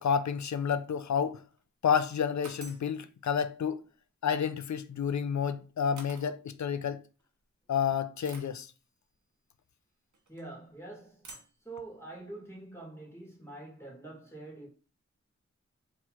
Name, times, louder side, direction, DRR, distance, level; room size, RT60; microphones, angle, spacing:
voice 1, 0.0-1.4 1.8-3.8 4.2-7.0 7.7-8.7, left 7 dB, 75° left, 0.4 m, -30 dB
sound 1, 1.3-1.6 2.4-2.9 4.9-5.1 6.0-6.3 7.2-7.3 8.2-8.6 10.1-10.5 11.2-11.6, right 3 dB, 85° right, 0.9 m, -49 dB
voice 2, 10.3-11.3 11.6-14.7, right 2 dB, 10° left, 2.0 m, -45 dB
3.6 x 3.0 x 4.3 m
wide cardioid pair, 85°, 29 cm